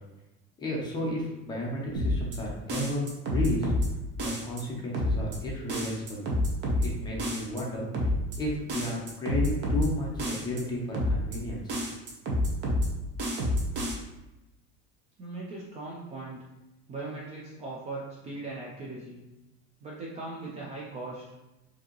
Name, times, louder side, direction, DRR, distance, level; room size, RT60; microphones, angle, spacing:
voice 1, 0.6-3.7 4.2-6.3 6.8-8.1 8.4-11.8, left 1 dB, 15° left, -4 dB, 0.7 m, -33 dB
sound 1, 1.9-2.4 2.7-3.9 4.2-4.6 4.9-5.4 5.7-6.9 7.2-7.6 7.9-8.4 8.7-9.9 10.2-10.6 10.9-11.4 11.7-12.9 13.2-13.9, left 1 dB, 40° right, 0.8 m, -28 dB
voice 2, 15.2-16.4 16.9-19.2 19.8-21.2, right 2 dB, 20° right, -4 dB, 0.4 m, -39 dB
4.6 x 2.8 x 3.0 m, 0.99 s
cardioid pair, 175°, 30 cm